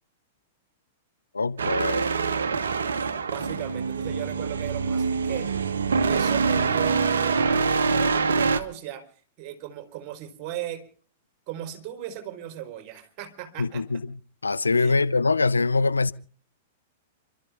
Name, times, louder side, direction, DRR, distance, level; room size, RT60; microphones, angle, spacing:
voice 1, 1.3-2.1 13.6-14.2 14.4-16.1, left 3 dB, 85° left, 0.8 m, -23 dB
sound 1, 1.6-8.6, right 5 dB, 70° right, 1.5 m, -25 dB
voice 2, 2.3-5.5 6.0-9.0 9.4-10.8 11.5-13.8 14.7-15.0, right 12 dB, 40° right, 4.3 m, -37 dB
30.0 x 13.0 x 3.6 m
figure-of-eight pair, 100°, 0 cm